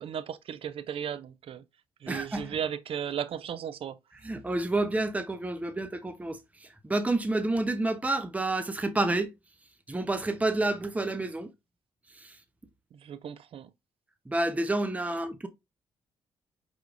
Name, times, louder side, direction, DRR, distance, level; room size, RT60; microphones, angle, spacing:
voice 1, 0.0-1.6 2.0-4.0 12.9-13.7, right 8 dB, 55° right, 0.5 m, -35 dB
voice 2, 2.1-2.6 4.2-9.3 9.9-11.5 12.1-12.4 14.3-15.5, right 2 dB, 10° right, 0.7 m, -29 dB
4.6 x 3.5 x 2.4 m
hypercardioid pair, 50°, 11 cm